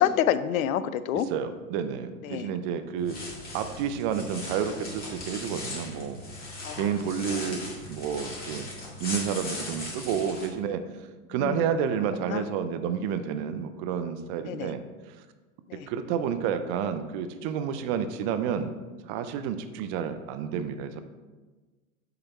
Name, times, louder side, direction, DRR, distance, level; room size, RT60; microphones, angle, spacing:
voice 1, 0.0-1.3 2.2-2.5 6.6-6.9 11.4-11.7 12.3-12.5 14.4-14.7 15.7-15.9, left 10 dB, 75° left, 14 dB, 0.5 m, -27 dB
voice 2, 1.1-3.2 3.5-6.2 6.8-8.7 9.0-10.8 11.3-14.8 15.1-15.2 15.9-18.7 19.1-21.0, right 7 dB, 40° right, 9 dB, 0.6 m, -30 dB
sound 1, 3.0-10.5, left 2 dB, 20° left, 1.9 m, -38 dB
7.0 x 3.9 x 4.4 m, 1.3 s
hypercardioid pair, 95°, 42 cm